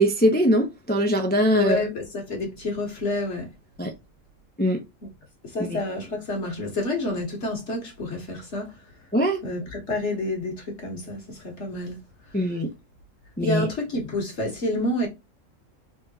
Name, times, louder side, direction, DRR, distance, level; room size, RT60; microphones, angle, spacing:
voice 1, 0.0-1.8 3.8-3.9 4.6-4.8 5.6-5.8 9.1-9.4 12.3-12.7 13.4-13.6, right 1 dB, 15° left, 0.4 m, -21 dB
voice 2, 1.5-3.5 5.4-8.8 9.4-12.0 13.4-15.1, left 2 dB, 60° left, 1.6 m, -29 dB
3.6 x 3.4 x 2.8 m
omnidirectional pair, 1.4 m